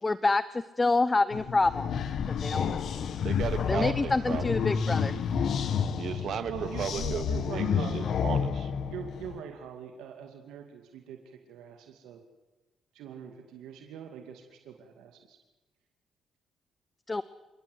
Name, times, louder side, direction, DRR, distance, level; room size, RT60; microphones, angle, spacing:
voice 1, 0.0-1.9 2.4-2.8 3.7-5.1 17.1-17.2, left 3 dB, 20° left, 16 dB, 0.8 m, -27 dB
sound 1, 1.3-9.4, left 7 dB, 65° left, 1.6 m, -30 dB
voice 2, 3.2-4.5 6.0-6.5 6.8-7.3 7.5-8.7, right 8 dB, 65° right, 11 dB, 2.0 m, -35 dB
voice 3, 6.5-8.1 8.9-12.2 12.9-15.4, right 8 dB, 90° right, 4 dB, 2.4 m, -43 dB
28.5 x 17.5 x 8.0 m, 1.1 s
cardioid pair, 90°, 0 cm